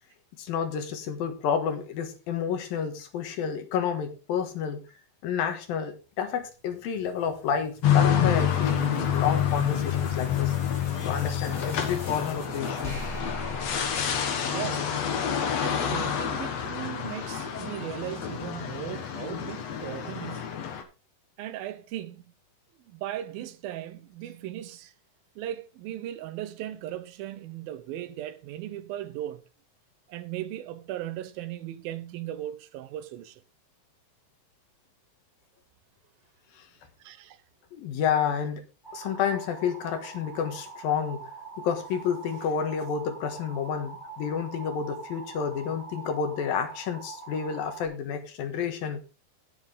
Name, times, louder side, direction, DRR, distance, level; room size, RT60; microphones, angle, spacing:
voice 1, 0.4-4.9 5.2-10.5 11.0-12.9 36.6-36.7 37.7-38.6 38.9-41.3 41.6-49.0, left 7 dB, 75° left, 3.1 m, -30 dB
sound 1, 6.4-15.0, equal, 20° left, 4.4 m, -44 dB
sound 2, 7.8-20.8, left 8 dB, 55° left, 2.2 m, -28 dB
voice 2, 14.4-15.1 15.6-20.6 21.4-22.3 22.9-24.9 25.4-29.4 30.1-33.4 37.0-37.4, right 12 dB, 80° right, 2.6 m, -37 dB
sound 3, 38.8-47.9, right 4 dB, 5° left, 3.9 m, -43 dB
11.0 x 9.6 x 3.8 m
omnidirectional pair, 4.2 m